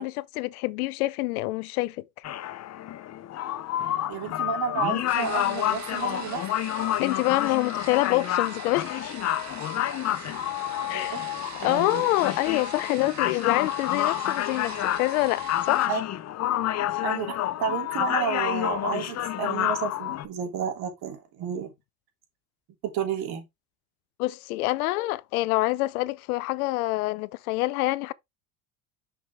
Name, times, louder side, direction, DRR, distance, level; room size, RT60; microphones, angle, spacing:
voice 1, 0.0-2.0 7.0-9.0 10.9-11.3 11.6-15.8 24.2-28.1, left 19 dB, 80° left, 0.6 m, -26 dB
sound 1, 2.2-20.3, left 13 dB, 35° left, 0.7 m, -29 dB
voice 2, 4.1-6.5 10.9-11.2 11.5-12.1 15.9-16.0 17.0-21.7 22.8-23.4, right 7 dB, 60° right, 3.1 m, -31 dB
sound 2, 5.1-15.9, right 7 dB, 40° right, 2.1 m, -43 dB
6.1 x 5.4 x 3.5 m
hypercardioid pair, 80°, 43 cm